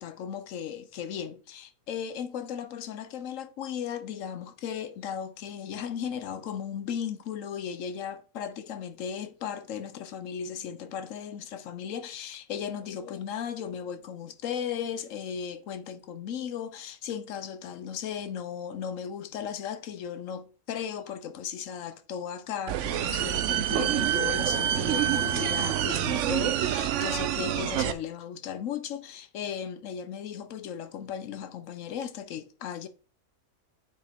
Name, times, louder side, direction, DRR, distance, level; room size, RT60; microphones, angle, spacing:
voice 1, 0.0-32.9, left 8 dB, 65° left, 1.0 m, -36 dB
sound 1, 22.7-27.9, right 11 dB, 65° right, 0.8 m, -27 dB
8.7 x 4.8 x 3.5 m
omnidirectional pair, 1.5 m